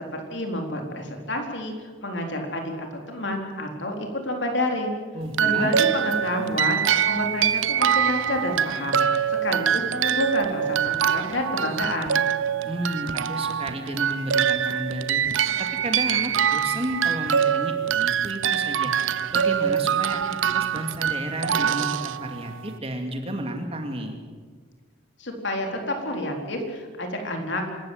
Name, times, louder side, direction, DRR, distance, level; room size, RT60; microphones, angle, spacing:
voice 1, 0.1-5.0 5.4-9.1 9.4-12.3 25.2-27.6, left 1 dB, 60° left, 3 dB, 4.1 m, -29 dB
voice 2, 5.1-5.8 12.7-15.2 15.6-18.9 19.3-24.2, right 1 dB, 30° right, 4 dB, 2.4 m, -32 dB
sound 1, 5.3-22.7, right 8 dB, 75° right, 0.7 m, -24 dB
26.0 x 14.0 x 9.3 m, 1.5 s
head